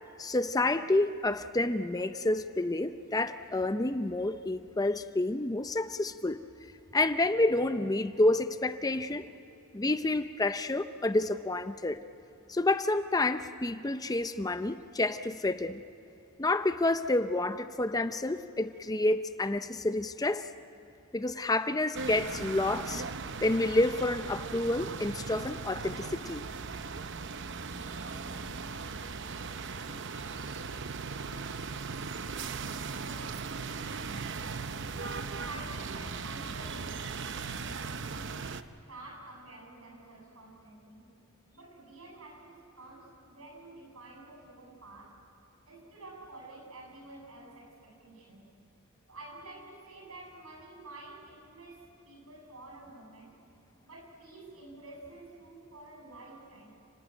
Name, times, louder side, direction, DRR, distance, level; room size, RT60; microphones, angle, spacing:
voice 1, 0.2-6.5 6.9-9.2 9.7-12.0 12.5-15.8 16.4-20.5 21.1-23.0 23.4-26.4, left 2 dB, 15° left, 10 dB, 0.6 m, -29 dB
sound 1, 21.9-38.6, right 4 dB, 55° right, 0.8 m, -38 dB
voice 2, 32.8-34.0 35.2-41.1 41.5-45.2 45.7-48.6 49.1-53.4 53.8-56.7, right 2 dB, 80° right, 0 dB, 7.3 m, -50 dB
30.0 x 19.5 x 9.1 m, 2.9 s
head